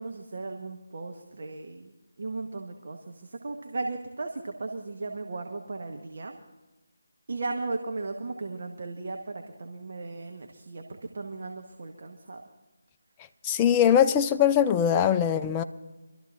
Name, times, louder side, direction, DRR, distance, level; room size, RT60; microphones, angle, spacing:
voice 1, 0.0-1.9 2.2-6.4 7.3-12.4, right 3 dB, 55° right, 3 dB, 1.1 m, -36 dB
voice 2, 13.4-15.6, left 9 dB, 15° left, 8 dB, 0.4 m, -21 dB
26.0 x 13.0 x 2.5 m, 1.1 s
figure-of-eight pair, 155°, 0 cm